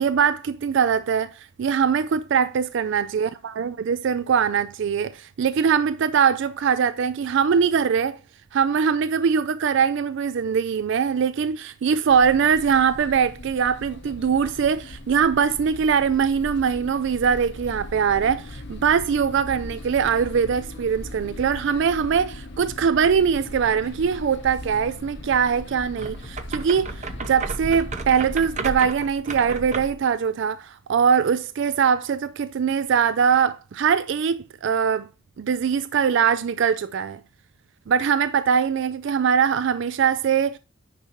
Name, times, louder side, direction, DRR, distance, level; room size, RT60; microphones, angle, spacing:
voice 1, 0.0-8.2 8.5-35.1 35.4-37.2 37.9-40.6, right 7 dB, 55° right, 0.3 m, -22 dB
sound 1, 12.1-28.9, left 1 dB, 55° left, 0.9 m, -39 dB
sound 2, 25.9-30.0, right 3 dB, 35° right, 0.7 m, -33 dB
9.9 x 5.7 x 3.0 m
head